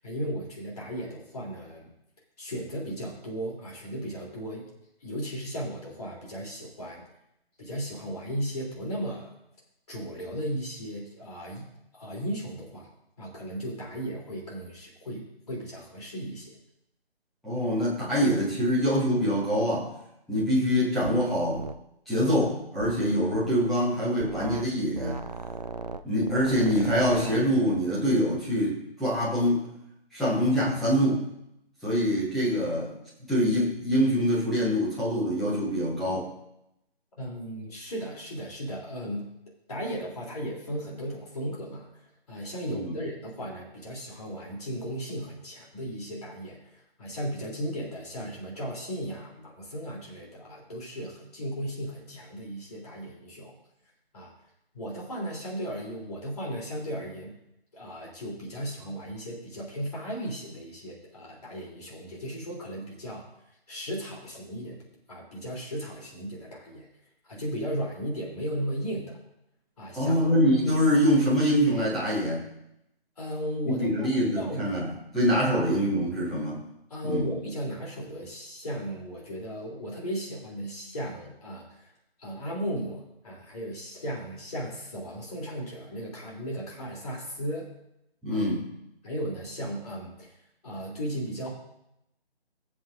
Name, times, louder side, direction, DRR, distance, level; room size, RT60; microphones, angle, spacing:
voice 1, 0.0-1.9 2.4-4.7 5.0-7.0 7.6-9.3 9.9-11.7 11.9-12.9 13.2-16.5 37.2-39.3 39.7-41.9 42.3-53.5 54.1-54.3 54.7-57.3 57.7-63.2 63.7-66.9 67.2-69.2 69.8-70.2 73.2-74.7 76.9-81.9 82.2-87.7 88.3-88.4 89.0-90.3 90.6-91.5, equal, 40° left, -3 dB, 3.3 m, -36 dB
voice 2, 17.4-19.9 20.3-21.6 22.1-25.2 26.0-29.7 30.1-31.2 31.8-32.9 33.3-36.3 42.7-43.0 69.9-72.5 73.6-76.6 77.0-77.3 88.2-88.7, equal, ahead, -10 dB, 1.1 m, -25 dB
sound 1, 21.0-21.3 21.5-21.8 22.8-23.5 24.2-24.7 24.9-27.4, right 3 dB, 45° right, 0.5 m, -36 dB
16.5 x 7.7 x 2.6 m, 0.82 s
figure-of-eight pair, 150°, 31 cm